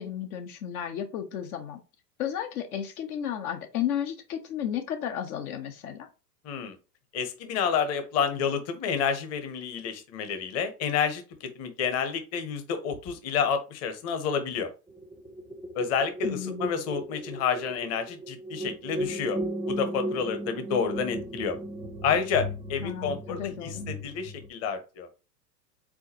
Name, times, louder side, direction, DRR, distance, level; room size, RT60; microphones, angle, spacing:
voice 1, 0.0-1.8 2.2-6.1 16.2-16.8 22.8-23.9, left 9 dB, 60° left, 6 dB, 1.0 m, -33 dB
voice 2, 6.4-6.8 7.1-14.7 15.7-19.4 19.7-21.6 22.0-25.1, left 6 dB, 30° left, 8 dB, 1.0 m, -29 dB
sound 1, 14.9-24.5, right 1 dB, 5° right, 0.6 m, -35 dB
4.7 x 3.8 x 2.8 m, 0.31 s
hypercardioid pair, 110°, 50 cm